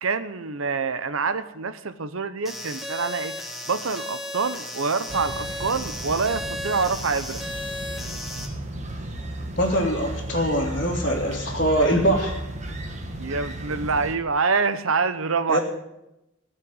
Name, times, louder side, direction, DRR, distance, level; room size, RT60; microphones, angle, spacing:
voice 1, 0.0-3.3 3.7-7.4 13.2-15.6, right 4 dB, 80° right, 12 dB, 0.9 m, -26 dB
sound 1, 2.5-8.5, left 1 dB, ahead, 2.2 m, -34 dB
sound 2, 5.1-14.1, right 1 dB, 35° right, 1.7 m, -34 dB
voice 2, 9.6-12.3 15.5-15.6, equal, 40° left, -7 dB, 2.6 m, -23 dB
18.5 x 6.6 x 9.5 m, 0.90 s
head